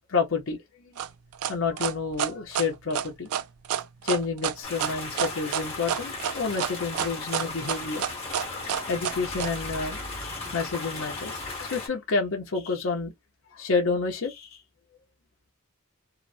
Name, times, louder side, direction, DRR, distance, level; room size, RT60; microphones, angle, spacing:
voice 1, 0.1-0.9 1.5-3.3 4.0-8.1 8.5-13.1 13.5-14.6, left 4 dB, 65° left, 0.7 m, -29 dB
sound 1, 1.0-9.5, right 9 dB, 75° right, 0.3 m, -29 dB
sound 2, 4.6-11.9, left 3 dB, 25° left, 1.3 m, -36 dB
2.9 x 2.0 x 2.5 m
head